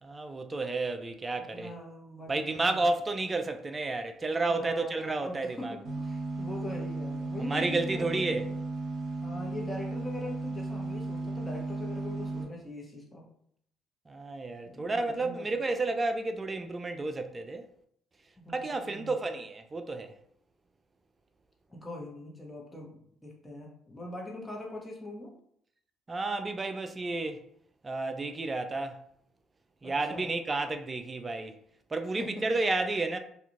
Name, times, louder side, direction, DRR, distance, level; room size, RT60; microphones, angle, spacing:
voice 1, 0.0-1.7 2.3-5.8 7.4-8.5 14.1-17.6 18.5-20.1 26.1-27.4 27.8-29.0 29.8-31.6 31.9-33.2, right 3 dB, 30° right, 0.4 m, -31 dB
voice 2, 1.4-2.9 4.5-8.6 9.2-13.3 14.7-15.6 18.4-19.2 21.7-25.3 29.8-30.4 32.2-32.5, left 1 dB, 15° left, 1.0 m, -42 dB
sound 1, 5.8-12.4, right 2 dB, 50° right, 0.9 m, -35 dB
2.5 x 2.3 x 3.0 m
hypercardioid pair, 55°, 0 cm